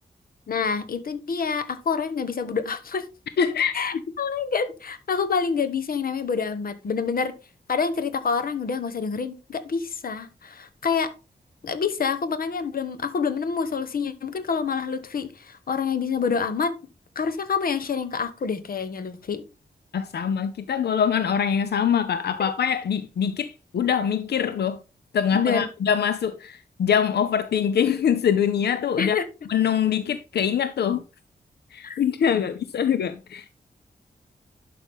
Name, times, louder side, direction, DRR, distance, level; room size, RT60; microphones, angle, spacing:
voice 1, 0.5-3.0 3.7-7.3 7.7-11.1 11.6-16.7 17.1-19.4 25.3-25.6 29.0-29.2 31.8-32.0, left 5 dB, 60° left, 1.1 m, -27 dB
voice 2, 3.4-3.8 19.9-24.8 25.1-29.2 29.5-31.0 31.7-33.5, left 8 dB, 90° left, 0.6 m, -24 dB
11.0 x 5.8 x 3.6 m
wide cardioid pair, 155°, 17 cm